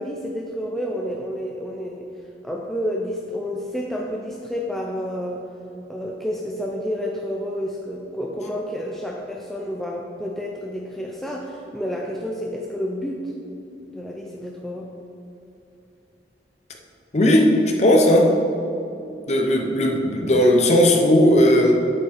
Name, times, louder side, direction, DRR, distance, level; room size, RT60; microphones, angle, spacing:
voice 1, 0.0-2.1 2.4-5.4 5.9-13.3 13.9-14.9, equal, ahead, -2 dB, 0.5 m, -30 dB
voice 2, 17.1-18.3 19.3-21.7, left 1 dB, 40° left, 2 dB, 0.7 m, -16 dB
8.3 x 8.0 x 3.5 m, 2.7 s
head